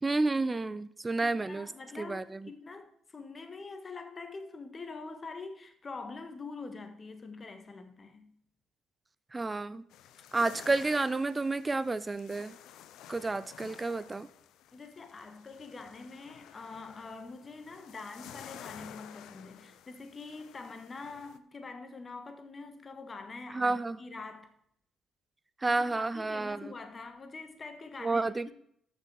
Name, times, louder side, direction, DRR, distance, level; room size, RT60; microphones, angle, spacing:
voice 1, 0.0-1.7 1.9-2.5 9.3-9.8 10.3-12.5 13.1-14.3 23.5-24.0 25.6-26.7 28.0-28.5, right 3 dB, 25° right, 0.6 m, -30 dB
voice 2, 1.2-8.3 14.7-24.5 25.7-28.3, left 4 dB, 35° left, 1.4 m, -45 dB
sound 1, 9.9-21.4, left 10 dB, 70° left, 0.5 m, -52 dB
6.7 x 6.0 x 7.4 m
hypercardioid pair, 50°, 0 cm